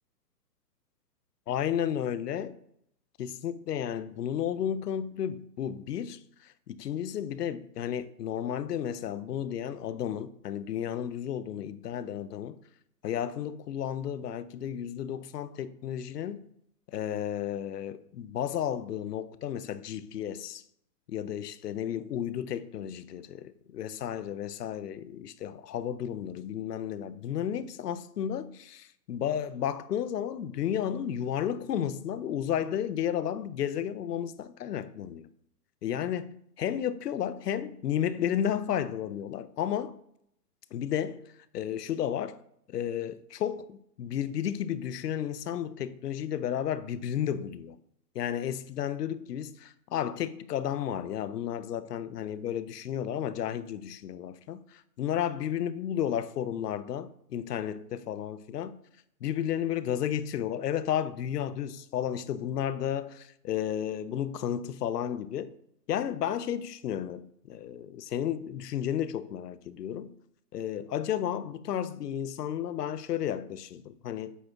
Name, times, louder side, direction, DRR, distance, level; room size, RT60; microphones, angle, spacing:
voice 1, 1.5-2.6 3.2-12.6 13.0-16.5 16.9-20.6 21.1-35.3 35.8-40.0 40.7-41.2 41.5-42.4 42.7-47.8 48.1-58.8 59.2-65.5 65.9-70.1 70.5-74.4, left 10 dB, 75° left, 0.7 m, -33 dB
8.3 x 5.8 x 2.4 m
hypercardioid pair, 140°, 49 cm